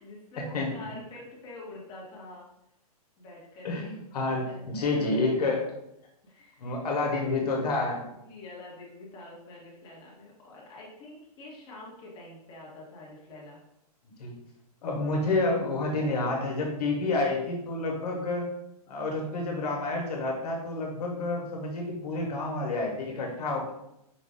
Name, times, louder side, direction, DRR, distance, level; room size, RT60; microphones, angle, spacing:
voice 1, 0.0-2.5 3.2-4.0 4.5-5.3 6.2-6.8 8.0-13.6 23.1-23.4, left 2 dB, 20° left, -5 dB, 1.2 m, -46 dB
voice 2, 0.5-0.9 3.6-5.7 6.6-8.0 14.2-14.3 14.8-18.5 18.9-23.7, left 2 dB, 75° left, 0 dB, 1.2 m, -29 dB
4.9 x 2.5 x 3.5 m, 0.81 s
hypercardioid pair, 160°, 20 cm